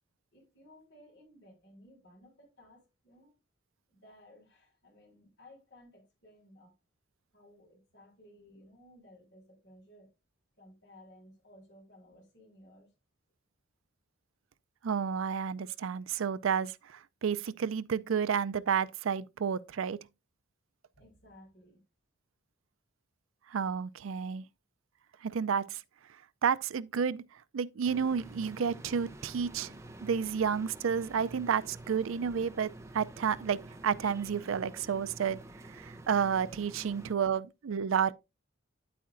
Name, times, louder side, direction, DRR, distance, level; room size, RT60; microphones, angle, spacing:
voice 1, 0.3-3.3 3.9-6.7 7.3-10.1 10.6-12.9 20.9-21.8 37.1-37.2, left 1 dB, 55° left, 5.5 m, -58 dB
voice 2, 14.8-20.0 23.5-24.5 25.2-25.8 26.4-27.2 27.5-29.7 30.0-35.4 35.7-38.1, right 7 dB, 80° right, 0.4 m, -31 dB
sound 1, 27.8-37.1, right 1 dB, 15° right, 0.7 m, -48 dB
9.3 x 8.4 x 2.5 m
head